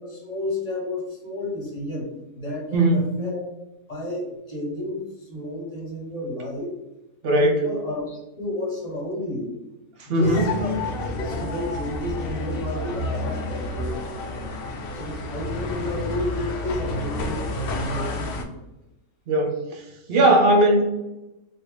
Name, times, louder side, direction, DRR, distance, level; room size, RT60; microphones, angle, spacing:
voice 1, 0.0-2.1 2.3-3.4 3.9-6.7 7.4-9.5 10.0-10.8 11.1-14.0 14.3-14.6 14.9-18.5, left 1 dB, 30° left, -3 dB, 0.9 m, -31 dB
voice 2, 2.7-3.0 7.2-7.6 10.1-10.4 19.3-19.8 20.1-20.8, right 1 dB, 55° right, 1 dB, 0.7 m, -18 dB
sound 1, 10.2-18.4, left 2 dB, 65° left, 0.6 m, -30 dB
3.4 x 2.4 x 3.0 m, 1.0 s
omnidirectional pair, 1.5 m